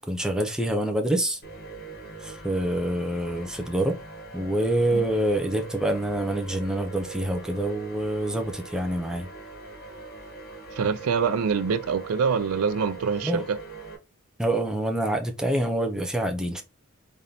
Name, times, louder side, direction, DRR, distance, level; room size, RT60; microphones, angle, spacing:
voice 1, 0.0-1.4 2.2-4.0 4.3-9.3 13.2-13.4 14.4-16.6, right 1 dB, 5° right, 0.6 m, -26 dB
sound 1, 1.4-13.9, right 4 dB, 50° left, 1.4 m, -41 dB
voice 2, 10.7-13.6, right 6 dB, 85° right, 0.4 m, -25 dB
3.8 x 3.4 x 2.7 m
head